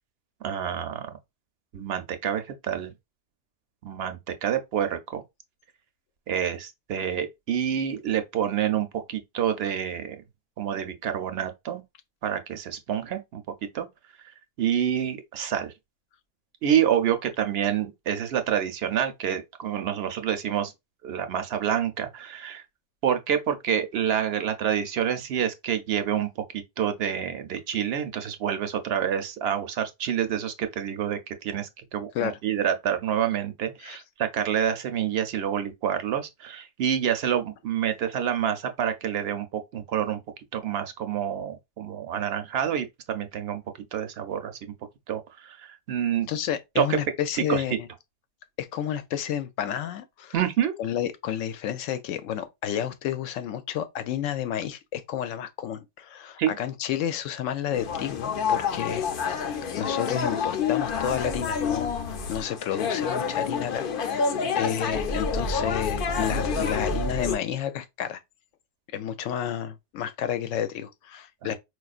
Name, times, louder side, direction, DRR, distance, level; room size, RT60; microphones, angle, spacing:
voice 1, 0.4-1.1 1.7-2.9 3.8-5.2 6.3-10.2 10.6-11.8 12.2-13.4 13.7-13.9 14.6-15.7 16.6-20.7 21.0-22.6 23.0-40.2 40.5-43.6 43.9-44.5 45.1-46.3 46.8-47.0 47.5-47.6 50.3-50.8 56.4-56.6 64.3-64.6 71.4-71.5, right 9 dB, 65° right, 0.7 m, -27 dB
voice 2, 46.3-47.9 48.6-50.3 50.8-59.0 59.7-68.2 68.9-71.5, left 10 dB, 85° left, 0.9 m, -31 dB
sound 1, 57.7-67.4, left 5 dB, 60° left, 0.6 m, -28 dB
4.5 x 2.4 x 2.4 m
omnidirectional pair, 1.3 m